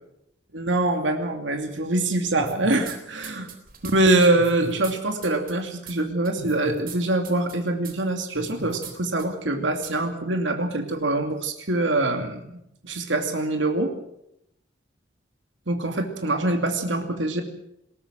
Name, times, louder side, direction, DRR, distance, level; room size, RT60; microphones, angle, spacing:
voice 1, 0.7-3.5 3.8-13.9 15.7-17.4, right 2 dB, 85° right, 5 dB, 2.6 m, -24 dB
sound 1, 2.4-3.0 3.2-4.9 5.2-5.5 5.9-6.0 6.2-7.0 7.2-7.5 7.8-7.9 8.3-8.9 9.2-9.3 9.8-9.9, right 3 dB, 50° right, 3.7 m, -38 dB
20.5 x 18.0 x 7.5 m, 0.79 s
head